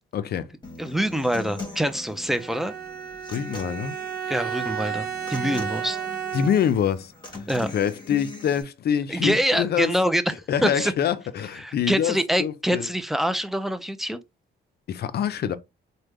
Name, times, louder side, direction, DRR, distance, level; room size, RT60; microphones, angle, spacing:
voice 1, 0.1-0.5 3.3-4.0 6.3-7.1 7.7-10.0 10.5-12.9 14.9-15.5, left 9 dB, 55° left, 0.5 m, -25 dB
Human voice / Acoustic guitar, 0.6-8.6, left 3 dB, 20° left, 1.1 m, -40 dB
voice 2, 0.8-2.7 4.3-6.0 7.5-7.7 9.1-10.3 10.6-10.9 11.5-14.2, equal, ahead, 0.4 m, -25 dB
Bowed string instrument, 2.3-6.8, right 8 dB, 50° right, 0.7 m, -32 dB
3.4 x 2.2 x 3.1 m
cardioid pair, 90°, 20 cm